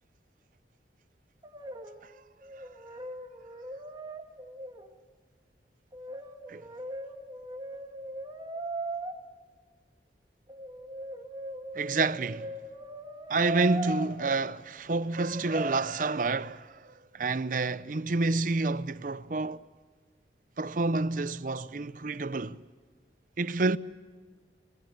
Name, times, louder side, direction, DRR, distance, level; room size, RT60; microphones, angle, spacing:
Brass instrument, 1.4-2.1 2.4-4.9 5.9-9.1 10.5-14.3 15.3-15.8, right 2 dB, 25° right, 1.6 m, -39 dB
voice 1, 11.7-12.5 13.3-19.6 20.6-22.6 23.4-23.8, right 3 dB, 45° right, 0.6 m, -29 dB
26.0 x 21.5 x 6.7 m
head